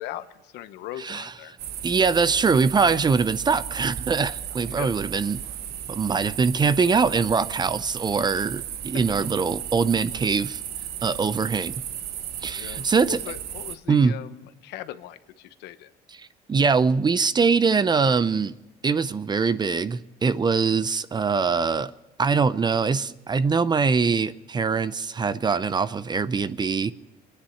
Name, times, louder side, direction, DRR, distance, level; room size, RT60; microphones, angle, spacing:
voice 1, 0.0-1.6 4.7-5.0 12.6-15.9, left 13 dB, 85° left, 0.9 m, -39 dB
sound 1, 1.6-13.8, right 10 dB, 70° right, 0.8 m, -35 dB
voice 2, 1.8-5.4 5.9-10.6 11.0-11.7 12.4-13.2 13.9-14.1 16.5-18.6 18.8-21.9 22.2-26.9, right 5 dB, 25° right, 0.5 m, -23 dB
23.5 x 10.0 x 5.7 m
cardioid pair, 110°, 17 cm